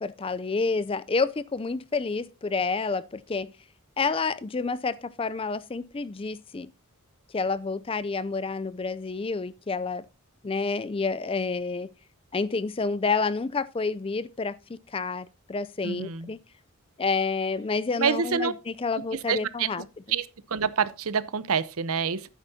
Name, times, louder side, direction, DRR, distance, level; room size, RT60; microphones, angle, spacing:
voice 1, 0.0-3.5 4.0-6.7 7.3-10.1 10.4-11.9 12.3-16.4 17.0-19.9, left 4 dB, 25° left, 0.4 m, -29 dB
voice 2, 15.8-16.3 18.0-18.5 19.3-19.7 20.1-20.3 20.5-22.3, right 6 dB, 80° right, 0.8 m, -27 dB
12.0 x 9.2 x 2.7 m
head